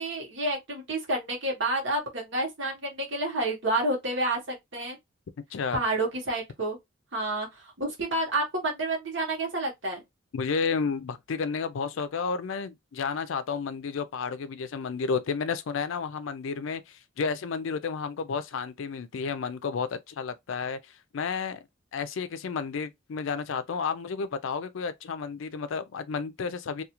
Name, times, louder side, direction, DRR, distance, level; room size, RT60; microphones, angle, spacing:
voice 1, 0.0-5.0 5.7-6.8 7.1-10.0, right 2 dB, 60° right, 1.0 m, -29 dB
voice 2, 10.3-21.6 21.9-26.8, left 5 dB, 70° left, 0.4 m, -31 dB
2.4 x 2.3 x 2.9 m
head